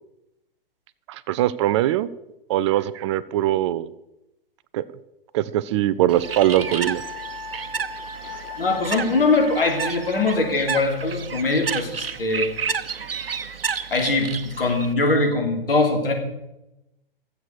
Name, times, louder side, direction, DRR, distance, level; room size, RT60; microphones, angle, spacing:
voice 1, 1.1-2.1 2.5-3.9 4.7-4.8 5.3-7.0 8.3-8.4, right 13 dB, 30° right, 16 dB, 0.4 m, -21 dB
Bird, 6.1-14.9, right 6 dB, 75° right, 0.9 m, -31 dB
Wind instrument woodwind instrument, 6.2-10.6, left 3 dB, 15° right, 4.6 m, -38 dB
voice 2, 8.6-12.5 13.9-16.1, left 3 dB, 75° left, 2 dB, 3.3 m, -22 dB
13.5 x 8.0 x 6.7 m, 0.91 s
figure-of-eight pair, 115°, 29 cm